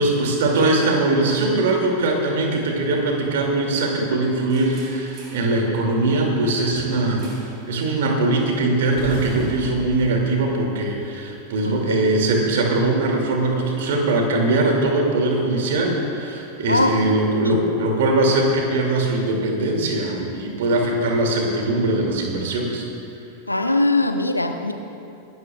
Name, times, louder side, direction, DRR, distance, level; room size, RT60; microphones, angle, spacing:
voice 1, 0.0-7.3 7.7-22.8, right 2 dB, 55° right, 1 dB, 2.5 m, -21 dB
big metal unlock and slam, 4.5-5.5 7.2-7.6 7.9-8.2 9.0-11.3, right 2 dB, 40° right, 3.6 m, -36 dB
voice 2, 11.6-12.0 16.7-17.0 17.4-17.6 23.5-24.7, left 2 dB, 85° left, 6 dB, 0.9 m, -21 dB
24.5 x 12.5 x 2.4 m, 2.7 s
figure-of-eight pair, 90°, 0 cm